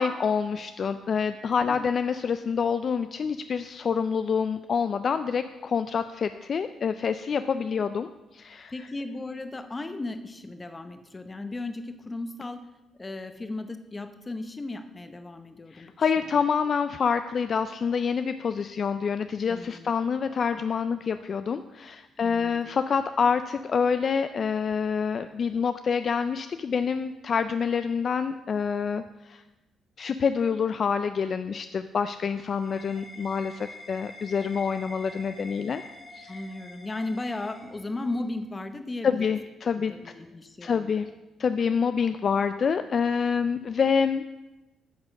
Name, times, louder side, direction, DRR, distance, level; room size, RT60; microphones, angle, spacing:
voice 1, 0.0-8.7 15.7-29.4 30.0-35.8 36.1-36.4 39.0-40.1 40.6-41.1 41.4-44.2, left 6 dB, 50° left, 10 dB, 0.3 m, -27 dB
voice 2, 8.7-12.6 12.9-16.4 19.5-20.0 22.2-22.8 36.3-39.2 39.8-41.0, left 2 dB, 25° left, 8 dB, 0.7 m, -36 dB
sound 1, 31.9-38.3, left 1 dB, ahead, 1.7 m, -47 dB
9.4 x 4.1 x 6.4 m, 1.1 s
cardioid pair, 90°, 0 cm